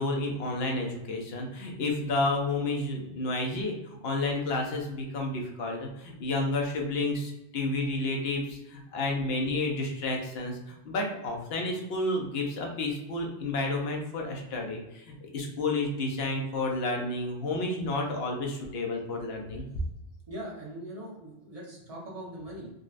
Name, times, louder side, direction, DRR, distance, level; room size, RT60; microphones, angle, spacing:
voice 1, 0.0-19.7, left 2 dB, 65° left, 1 dB, 0.8 m, -31 dB
voice 2, 20.3-22.7, right 1 dB, 35° right, -5 dB, 1.0 m, -41 dB
3.7 x 2.3 x 2.4 m, 0.90 s
omnidirectional pair, 1.2 m